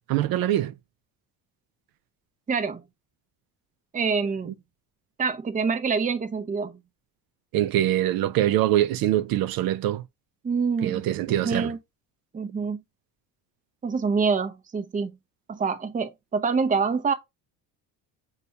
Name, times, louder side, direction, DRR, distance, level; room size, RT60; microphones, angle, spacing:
voice 1, 0.1-0.7 7.5-10.0 10.8-11.7, right 13 dB, 70° right, 0.5 m, -23 dB
voice 2, 2.5-2.8 3.9-4.5 5.2-6.8 10.4-11.0 11.3-11.8 12.3-12.8 13.8-15.1 15.5-17.1, right 5 dB, 20° right, 0.6 m, -26 dB
6.7 x 2.3 x 2.7 m
cardioid pair, 110°, 37 cm